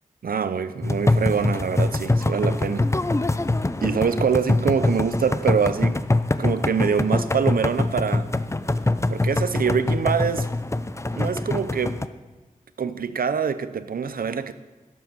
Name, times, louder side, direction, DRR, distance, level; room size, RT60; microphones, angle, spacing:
voice 1, 0.2-2.9 3.8-6.0 6.4-8.3 9.1-10.5 11.2-12.0 12.8-14.5, right 6 dB, 85° right, 0.6 m, -24 dB
sound 1, 0.8-12.1, left 2 dB, 20° left, 0.5 m, -24 dB
12.0 x 7.5 x 6.1 m
wide cardioid pair, 55°, 15 cm